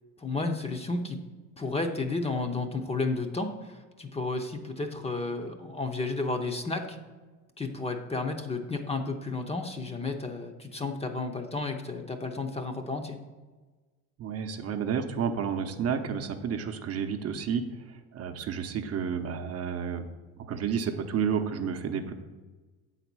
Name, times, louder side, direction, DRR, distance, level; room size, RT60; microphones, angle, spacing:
voice 1, 0.2-1.2 1.6-7.0 7.6-13.2, left 3 dB, 20° left, 5 dB, 0.7 m, -32 dB
voice 2, 14.2-17.6 17.9-20.1 20.4-22.1, right 7 dB, 50° right, 6 dB, 0.8 m, -31 dB
7.8 x 4.1 x 6.1 m, 1.3 s
cardioid pair, 110°, 33 cm